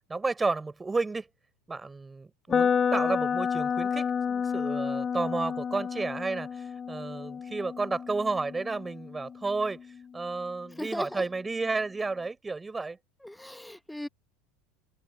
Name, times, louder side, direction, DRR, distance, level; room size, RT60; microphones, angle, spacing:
voice 1, 0.1-1.3 1.7-9.8 10.1-13.0, right 3 dB, 15° right, 5.2 m, -32 dB
sound 1, 2.5-10.4, left 7 dB, 30° left, 1.3 m, -30 dB
voice 2, 10.8-11.2 13.2-14.1, left 1 dB, 5° left, 1.4 m, -37 dB
hypercardioid pair, 80°, 0 cm